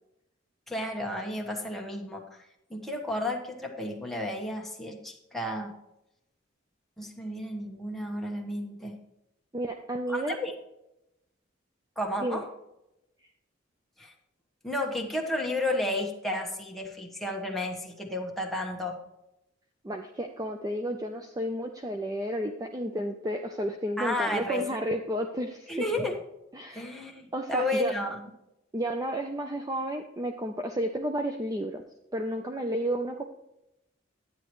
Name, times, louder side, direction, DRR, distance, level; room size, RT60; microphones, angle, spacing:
voice 1, 0.7-5.7 7.0-9.0 10.1-10.5 12.0-12.4 14.0-14.1 14.6-19.0 24.0-24.7 25.7-26.2 26.7-28.2, left 1 dB, ahead, 0 dB, 1.3 m, -32 dB
voice 2, 9.5-10.4 12.2-12.4 19.8-25.9 26.5-26.9 27.3-27.9 28.7-31.8 32.1-33.2, right 1 dB, 20° right, 4 dB, 0.5 m, -32 dB
10.0 x 9.5 x 3.1 m, 0.88 s
head